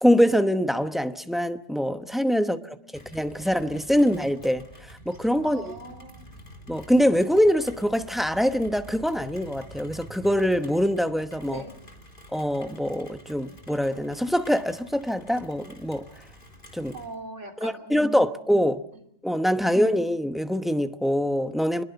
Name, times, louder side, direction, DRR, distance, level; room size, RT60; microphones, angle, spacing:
voice 1, 0.0-2.8 3.1-4.6 5.0-5.8 6.7-11.6 12.3-16.1 16.7-16.9 17.6-18.8 19.2-21.8, equal, ahead, 0.9 m, -24 dB
voice 2, 2.4-3.1 5.4-6.3 11.5-11.7 16.9-18.3, right 2 dB, 70° right, 3.5 m, -41 dB
Rain, 2.9-17.1, equal, 45° left, 3.6 m, -48 dB
26.0 x 21.5 x 7.0 m
omnidirectional pair, 1.3 m